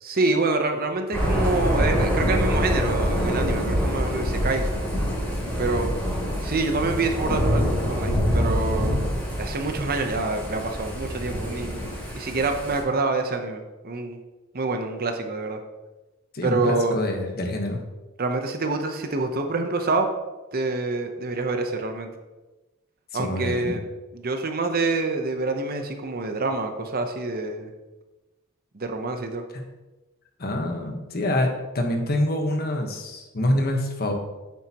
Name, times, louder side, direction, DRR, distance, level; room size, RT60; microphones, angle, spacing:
voice 1, 0.0-4.9 5.6-5.9 6.4-9.0 9.4-11.8 12.2-14.2 14.5-15.6 16.4-17.0 18.2-20.1 20.5-22.1 23.1-23.8 24.1-27.7 28.7-29.4, right 3 dB, 45° right, 6 dB, 0.8 m, -26 dB
Thunder / Rain, 1.1-12.8, equal, 10° left, 2.9 m, -25 dB
voice 2, 16.3-17.8 23.1-23.8 29.5-29.6 30.4-34.1, left 1 dB, 45° left, 3 dB, 1.2 m, -26 dB
8.9 x 7.6 x 3.0 m, 1.1 s
head